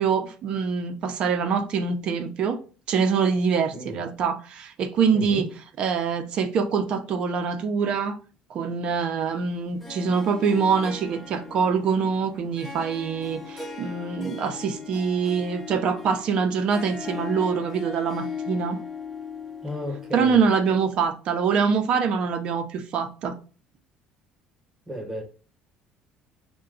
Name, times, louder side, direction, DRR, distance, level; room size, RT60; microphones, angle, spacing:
voice 1, 0.0-2.6 2.9-5.5 5.8-8.2 8.5-18.8 20.1-23.4, right 6 dB, 40° right, 0.5 m, -24 dB
voice 2, 5.1-5.5 19.6-20.4 24.9-25.2, equal, 10° right, 0.9 m, -33 dB
Harp, 9.8-20.9, left 5 dB, 5° left, 0.5 m, -38 dB
5.6 x 2.2 x 3.7 m
cardioid pair, 170°, 2 cm